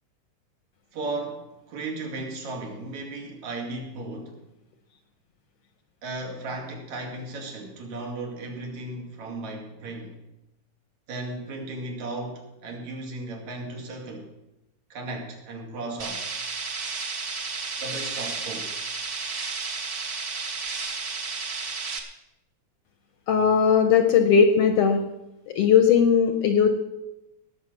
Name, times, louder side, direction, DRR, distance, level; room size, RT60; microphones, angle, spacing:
voice 1, 0.9-4.4 6.0-10.2 11.1-14.3 14.9-16.3 17.8-18.8, right 2 dB, 65° right, 1 dB, 3.6 m, -35 dB
sound 1, 16.0-22.0, right 4 dB, 45° right, 1.3 m, -32 dB
voice 2, 23.3-25.0 25.6-26.7, left 7 dB, 65° left, 7 dB, 1.6 m, -18 dB
19.0 x 7.2 x 6.2 m, 0.91 s
omnidirectional pair, 3.5 m